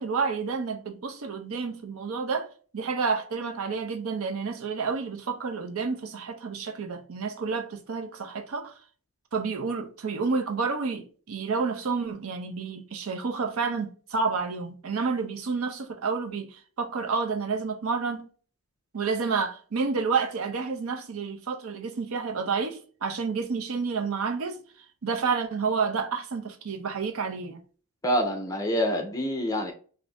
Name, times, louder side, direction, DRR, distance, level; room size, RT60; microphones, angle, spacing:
voice 1, 0.0-2.5 2.7-8.7 9.3-18.2 18.9-24.6 25.0-27.6, right 5 dB, 65° right, 0.6 m, -30 dB
voice 2, 28.0-29.7, equal, 15° left, 0.7 m, -26 dB
2.6 x 2.5 x 3.3 m
head